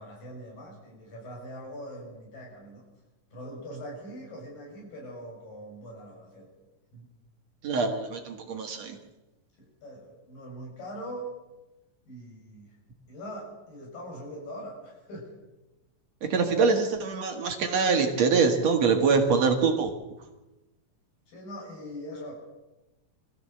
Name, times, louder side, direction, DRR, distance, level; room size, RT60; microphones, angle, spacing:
voice 1, 0.0-2.8 3.3-6.5 6.9-7.1 9.6-11.3 12.1-12.7 13.1-15.3 21.3-22.3, equal, 85° left, -1 dB, 8.1 m, -42 dB
voice 2, 7.6-9.0 16.3-19.9, right 5 dB, 55° right, 4 dB, 2.7 m, -24 dB
23.0 x 15.0 x 7.8 m, 1.0 s
omnidirectional pair, 3.9 m